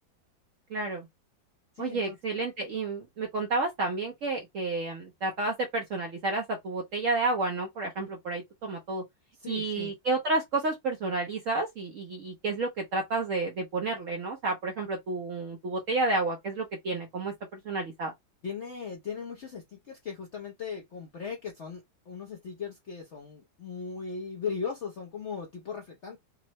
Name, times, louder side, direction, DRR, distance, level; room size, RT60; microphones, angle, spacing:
voice 1, 0.7-1.1 1.8-9.0 9.5-18.1, right 3 dB, 65° right, 0.8 m, -31 dB
voice 2, 1.8-2.2 9.4-9.9 18.4-21.8 22.1-26.2, left 6 dB, 65° left, 0.6 m, -38 dB
3.6 x 2.0 x 2.9 m
omnidirectional pair, 2.0 m